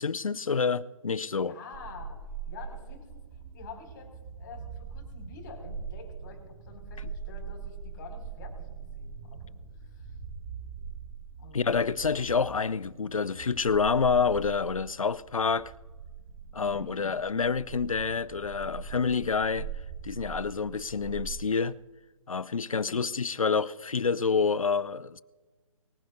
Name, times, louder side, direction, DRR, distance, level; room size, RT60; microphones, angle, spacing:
voice 1, 0.0-1.5 11.5-15.7 16.5-19.7 20.0-21.8 22.3-25.2, left 5 dB, 75° left, 0.6 m, -28 dB
voice 2, 1.3-2.2 2.4-4.1 4.4-8.7 8.9-9.4 9.8-10.1 11.4-11.7 16.5-17.2 22.9-23.1, left 5 dB, 35° left, 5.7 m, -47 dB
sound 1, 1.7-21.4, right 6 dB, 20° right, 4.4 m, -42 dB
24.0 x 16.0 x 2.7 m
figure-of-eight pair, 135°, 18 cm